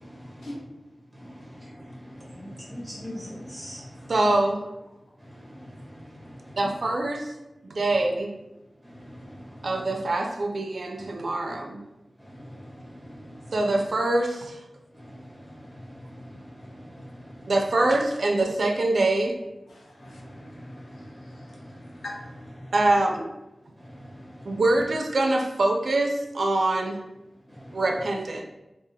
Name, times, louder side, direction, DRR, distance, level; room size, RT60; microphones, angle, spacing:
voice 1, 2.3-3.8 13.2-13.3 20.5-21.0 23.9-24.1, equal, 5° left, -5 dB, 1.4 m, -39 dB
voice 2, 4.1-4.7 6.6-7.3 7.7-8.3 9.6-11.8 13.5-14.6 17.5-19.4 22.7-23.3 24.5-27.0 27.7-28.4, right 2 dB, 70° right, 3 dB, 0.4 m, -24 dB
voice 3, 19.7-21.6 22.0-22.1, left 2 dB, 90° left, -2 dB, 0.7 m, -45 dB
3.5 x 2.4 x 3.3 m, 0.98 s
cardioid pair, 45°, 0 cm